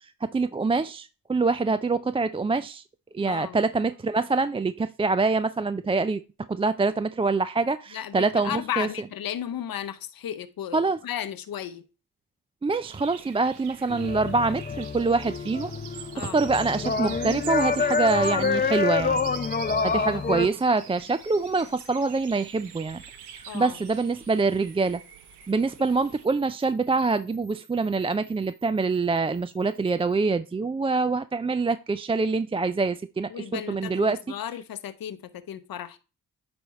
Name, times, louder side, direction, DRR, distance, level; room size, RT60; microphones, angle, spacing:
voice 1, 0.3-2.8 3.1-6.2 6.5-8.9 10.7-11.0 12.6-19.2 19.8-23.0 23.3-25.0 25.5-34.2, right 3 dB, 15° right, 0.3 m, -25 dB
voice 2, 3.2-3.6 7.9-11.8 16.1-16.4 19.9-20.5 23.5-23.8 33.3-36.0, left 10 dB, 60° left, 0.8 m, -35 dB
sound 1, 12.8-26.3, right 10 dB, 85° right, 0.7 m, -44 dB
sound 2, 13.9-20.5, left 5 dB, 25° left, 0.6 m, -27 dB
sound 3, 16.9-30.2, right 2 dB, 40° right, 2.8 m, -53 dB
9.6 x 3.5 x 4.0 m
supercardioid pair, 45°, 39 cm